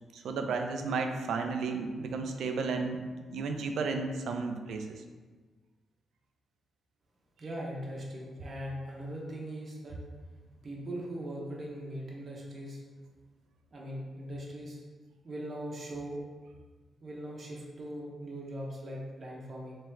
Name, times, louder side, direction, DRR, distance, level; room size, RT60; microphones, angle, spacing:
voice 1, 0.1-4.9, right 4 dB, 80° right, 5 dB, 0.4 m, -33 dB
voice 2, 7.4-10.0 10.6-12.8 13.7-14.8 15.2-16.2 17.0-19.8, equal, 45° right, -3 dB, 0.9 m, -40 dB
3.2 x 3.1 x 3.5 m, 1.4 s
cardioid pair, 95°, 0 cm